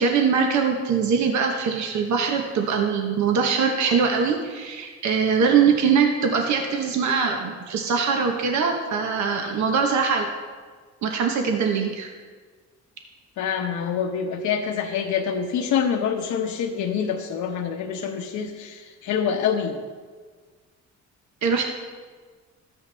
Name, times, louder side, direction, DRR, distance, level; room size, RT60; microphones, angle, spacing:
voice 1, 0.0-10.3 11.0-12.1 21.4-21.6, right 6 dB, 65° right, 3 dB, 1.1 m, -22 dB
voice 2, 13.4-19.8, left 7 dB, 75° left, 2 dB, 0.9 m, -26 dB
13.5 x 8.8 x 3.4 m, 1.5 s
cardioid pair, 90°, 30 cm